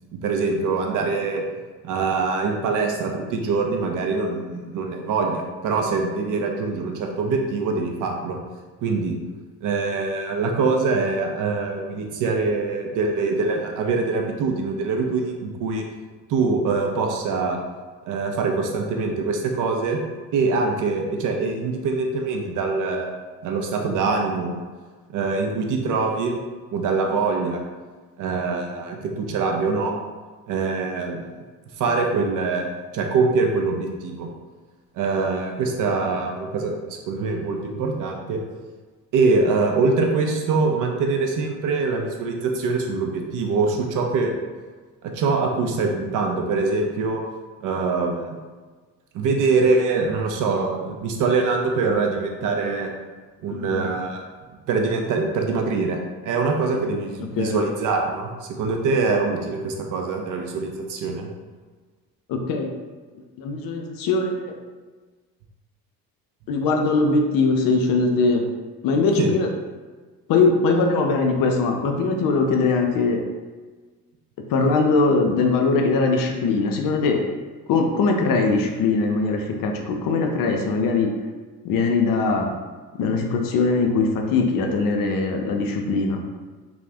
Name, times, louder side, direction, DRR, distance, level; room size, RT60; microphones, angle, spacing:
voice 1, 0.1-1.4 1.8-8.4 8.8-9.2 9.6-15.9 16.3-17.6 18.1-20.0 20.3-23.1 23.4-24.6 25.1-26.4 26.7-27.6 28.2-29.9 30.5-31.3 31.8-34.3 35.0-38.4 39.1-44.3 45.0-47.2 47.6-48.4 49.1-52.9 53.4-54.2 54.7-56.0 56.2-61.3 69.2-69.3, right 4 dB, 45° right, 2 dB, 0.5 m, -24 dB
voice 2, 53.5-53.8 57.4-57.6 62.3-62.7 63.4-64.5 66.5-68.4 68.8-69.5 70.3-73.2 74.5-77.2 77.7-81.1 81.6-82.6 83.0-86.2, left 3 dB, 45° left, 3 dB, 0.5 m, -21 dB
2.4 x 2.1 x 3.4 m, 1.4 s
figure-of-eight pair, 50°, 48 cm